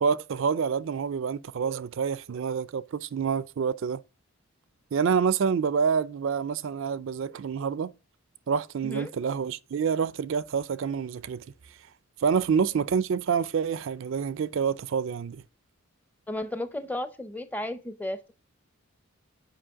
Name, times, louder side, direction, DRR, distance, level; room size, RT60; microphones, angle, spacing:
voice 1, 0.0-4.0 4.9-7.9 8.5-11.4 12.2-15.4, right 6 dB, 60° right, 0.4 m, -27 dB
voice 2, 16.3-18.3, left 1 dB, 5° left, 0.5 m, -34 dB
7.6 x 5.2 x 3.5 m
head